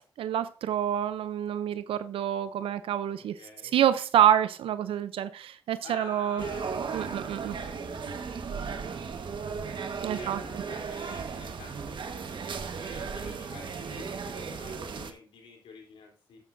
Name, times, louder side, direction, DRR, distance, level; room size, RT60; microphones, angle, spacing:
voice 1, 0.0-3.4 3.7-6.4 6.9-7.6 10.0-10.4, right 10 dB, 80° right, 0.6 m, -27 dB
voice 2, 3.2-3.7 5.8-9.4 10.1-16.4, left 4 dB, 85° left, 3.4 m, -49 dB
sound 1, 6.4-15.1, right 5 dB, 60° right, 1.4 m, -36 dB
12.5 x 9.2 x 2.6 m
supercardioid pair, 55°, 9 cm